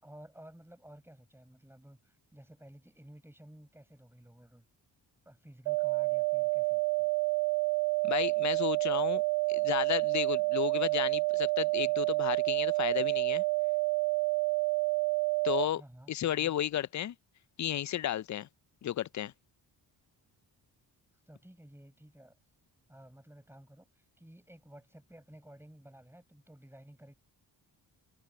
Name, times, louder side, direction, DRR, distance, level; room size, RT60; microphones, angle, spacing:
voice 1, 0.0-4.7 5.3-7.1 15.8-16.6 21.3-22.4 22.9-27.1, right 1 dB, 5° right, 5.6 m, -54 dB
sound 1, 5.7-15.7, right 24 dB, 80° right, 0.6 m, -29 dB
voice 2, 8.0-9.2 9.5-13.4 15.4-15.8 16.1-17.1 17.6-18.5 18.8-19.3, left 11 dB, 45° left, 0.4 m, -33 dB
cardioid pair, 85°, 44 cm